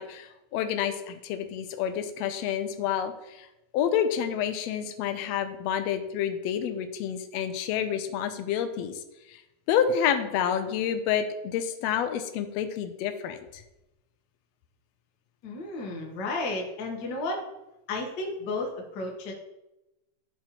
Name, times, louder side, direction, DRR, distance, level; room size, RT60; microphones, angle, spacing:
voice 1, 0.0-3.5 3.7-9.0 9.3-9.4 9.7-13.6, left 8 dB, 80° left, 8 dB, 1.6 m, -29 dB
voice 2, 15.4-17.4 17.9-19.3, left 2 dB, 55° left, 0 dB, 1.2 m, -32 dB
12.0 x 4.2 x 2.9 m, 0.94 s
omnidirectional pair, 3.5 m